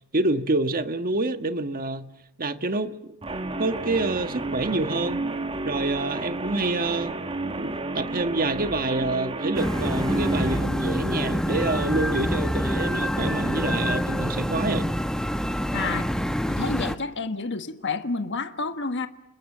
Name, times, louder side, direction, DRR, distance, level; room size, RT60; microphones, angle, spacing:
voice 1, 0.1-2.1 2.4-3.1 3.6-5.2 5.6-7.2 7.6-14.9, right 2 dB, 45° right, 1.4 m, -27 dB
Guitar, 3.2-10.6, right 2 dB, 25° right, 1.8 m, -31 dB
sound 1, 9.5-17.0, equal, 5° left, 1.1 m, -26 dB
voice 2, 15.7-16.0 16.5-19.1, left 4 dB, 60° left, 1.5 m, -29 dB
29.5 x 21.5 x 7.4 m
head